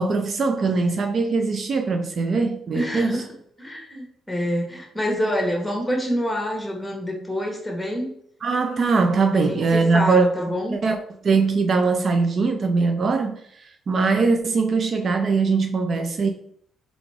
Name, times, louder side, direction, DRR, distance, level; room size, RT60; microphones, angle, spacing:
voice 1, 0.0-3.2 8.4-10.3 10.7-11.0 11.2-16.3, right 4 dB, 50° right, 0.5 m, -21 dB
voice 2, 2.7-3.3 3.6-8.1 9.3-10.8, equal, 5° left, 1.4 m, -26 dB
3.9 x 3.4 x 3.5 m
cardioid pair, 90°, 0 cm